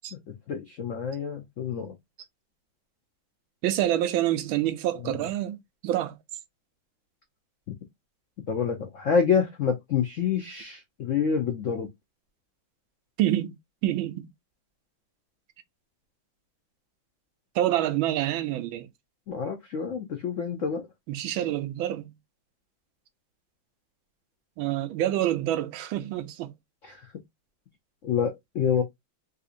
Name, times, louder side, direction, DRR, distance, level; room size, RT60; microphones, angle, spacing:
voice 1, 0.5-1.9 5.0-5.3 8.5-11.9 19.3-20.9 26.8-27.1 28.0-28.8, left 6 dB, 85° left, 0.6 m, -27 dB
voice 2, 3.6-5.6 5.8-6.1 13.2-13.6 13.8-14.3 17.6-18.9 21.1-22.1 24.6-26.5, right 13 dB, 80° right, 1.4 m, -27 dB
3.8 x 2.7 x 2.5 m
omnidirectional pair, 2.2 m